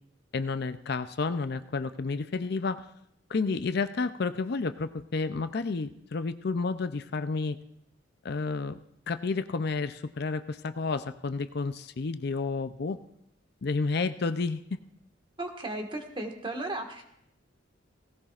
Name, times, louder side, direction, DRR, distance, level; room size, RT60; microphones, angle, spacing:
voice 1, 0.3-2.9 3.3-7.6 8.2-8.8 9.1-13.0 13.6-14.6, left 4 dB, 55° left, 11 dB, 0.5 m, -30 dB
voice 2, 15.4-17.0, right 2 dB, 25° right, 3 dB, 1.6 m, -35 dB
18.0 x 17.0 x 2.5 m, 0.76 s
head